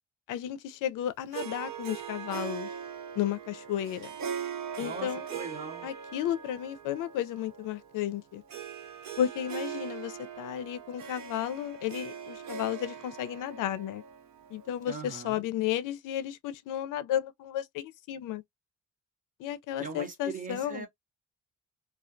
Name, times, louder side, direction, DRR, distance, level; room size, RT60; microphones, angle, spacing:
voice 1, 0.3-2.7 3.2-4.1 4.8-5.3 5.8-8.4 9.2-14.0 14.5-18.4 19.4-20.9, left 11 dB, 85° left, 0.5 m, -33 dB
Harp, 1.3-15.0, right 8 dB, 65° right, 0.7 m, -41 dB
voice 2, 4.8-5.9 14.9-15.4 19.8-20.9, right 5 dB, 25° right, 0.6 m, -40 dB
2.3 x 2.1 x 2.5 m
cardioid pair, 150°, 31 cm